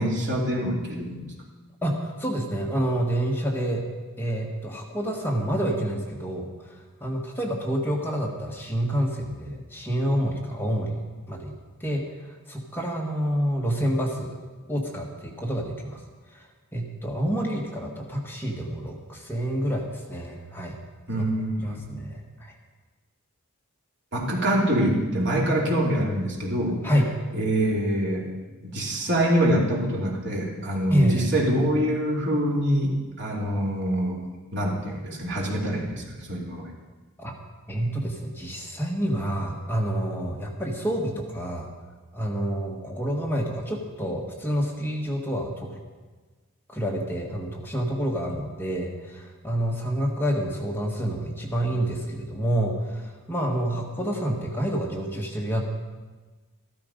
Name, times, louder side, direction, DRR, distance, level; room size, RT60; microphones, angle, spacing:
voice 1, 0.0-1.3 21.1-21.9 24.1-26.9 27.3-28.3 28.6-34.2 34.5-36.7, right 1 dB, 55° right, -2 dB, 3.0 m, -25 dB
voice 2, 1.8-3.9 4.2-11.0 11.3-11.5 11.8-14.4 14.7-16.0 16.3-16.4 16.7-20.8 21.1-21.2 21.6-22.5 26.8-27.1 30.9-31.3 37.2-37.3 37.7-41.7 42.1-45.8 46.7-55.6, equal, 10° left, -1 dB, 1.5 m, -28 dB
14.0 x 13.0 x 5.2 m, 1.3 s
head